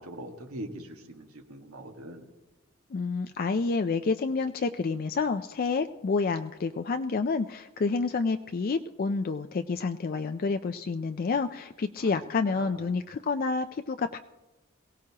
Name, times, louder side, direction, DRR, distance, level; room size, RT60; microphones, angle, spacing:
voice 1, 0.0-2.3 12.0-12.1 12.5-13.0, right 1 dB, 85° right, 3 dB, 1.7 m, -42 dB
voice 2, 2.9-14.2, left 4 dB, 45° left, 8 dB, 0.4 m, -29 dB
22.5 x 17.0 x 2.9 m, 1.1 s
head